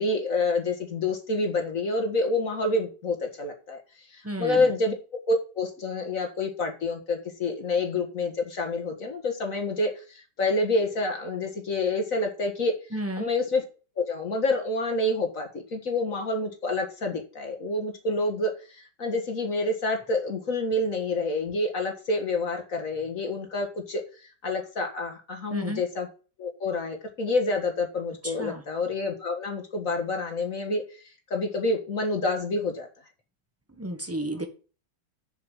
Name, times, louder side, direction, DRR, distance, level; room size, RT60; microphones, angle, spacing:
voice 1, 0.0-3.8 4.1-5.0 5.3-12.7 13.2-13.6 14.0-26.1 26.4-32.9, left 2 dB, 50° left, 4 dB, 2.0 m, -28 dB
voice 2, 4.2-4.7 12.9-13.3 25.5-25.8 28.2-28.6 33.8-34.5, right 1 dB, 10° right, 6 dB, 1.2 m, -32 dB
7.4 x 5.9 x 7.3 m, 0.36 s
omnidirectional pair, 1.9 m